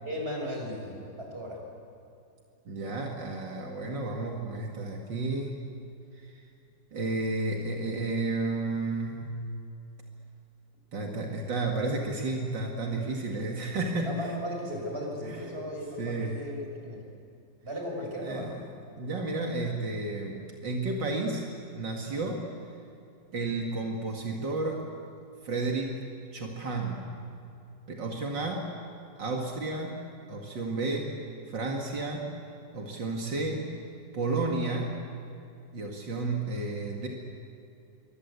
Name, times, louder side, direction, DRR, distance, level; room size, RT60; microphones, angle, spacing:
voice 1, 0.0-1.6 14.1-17.0 17.6-18.6, equal, 35° right, 0 dB, 6.3 m, -36 dB
voice 2, 2.7-5.6 6.2-6.4 6.9-9.3 10.9-14.3 15.3-15.5 16.0-16.4 18.2-21.5 21.7-22.5 23.3-24.9 25.4-26.0 26.3-27.1 27.9-28.7 29.2-30.0 30.3-31.1 31.5-32.3 32.7-33.7 34.1-35.0 35.7-37.1, right 2 dB, 80° right, 0 dB, 2.9 m, -32 dB
28.0 x 24.0 x 8.4 m, 2.6 s
omnidirectional pair, 1.9 m